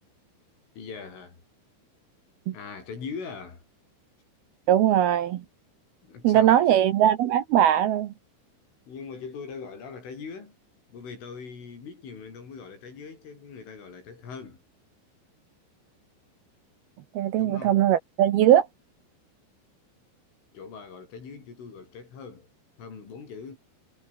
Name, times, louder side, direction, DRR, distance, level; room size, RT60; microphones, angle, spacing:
voice 1, 0.8-1.4 2.5-3.6 6.0-6.8 8.9-10.6 10.9-14.6 17.4-17.8 20.5-22.5 22.8-23.6, left 5 dB, 80° left, 9.5 m, -41 dB
voice 2, 4.7-5.4 6.2-8.1 17.2-18.7, right 11 dB, 70° right, 2.6 m, -20 dB
omnidirectional pair, 5.6 m